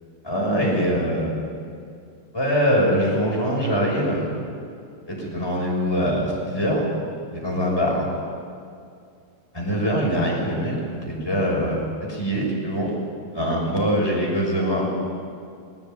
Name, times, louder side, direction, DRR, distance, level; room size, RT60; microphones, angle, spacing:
voice 1, 0.2-1.4 2.3-4.2 5.1-6.9 7.3-8.0 9.5-11.8 12.1-12.9 13.3-14.9, equal, 10° left, -3 dB, 6.7 m, -23 dB
19.5 x 19.0 x 9.4 m, 2.3 s
omnidirectional pair, 2.4 m